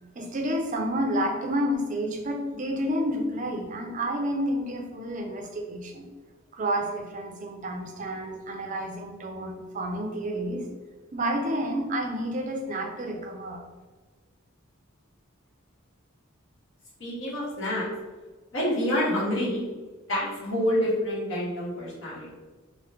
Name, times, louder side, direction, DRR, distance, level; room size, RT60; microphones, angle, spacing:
voice 1, 0.2-6.1 6.5-10.6 11.1-13.6, equal, 40° right, 1 dB, 0.4 m, -30 dB
voice 2, 17.0-17.9 18.5-19.6 20.1-22.3, equal, 65° left, -6 dB, 1.1 m, -27 dB
2.9 x 2.1 x 3.3 m, 1.3 s
head